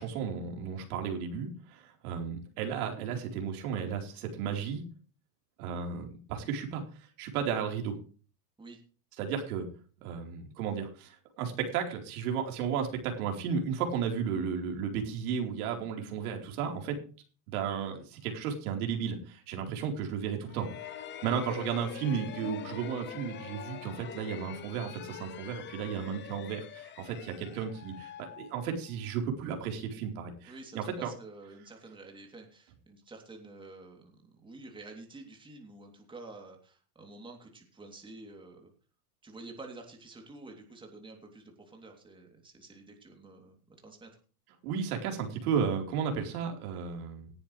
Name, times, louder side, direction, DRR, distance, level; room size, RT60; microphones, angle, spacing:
voice 1, 0.0-4.8 5.6-6.8 7.2-8.0 9.2-9.7 10.0-17.0 17.5-20.7 21.2-31.1 44.6-47.3, right 7 dB, 70° right, 2 dB, 4.5 m, -34 dB
sound 1, 20.5-29.1, left 10 dB, 25° left, 0.9 m, -45 dB
voice 2, 30.5-38.7 39.2-44.1, right 2 dB, 10° right, 2 dB, 3.3 m, -49 dB
18.0 x 10.5 x 3.4 m, 0.38 s
supercardioid pair, 135°, 45 cm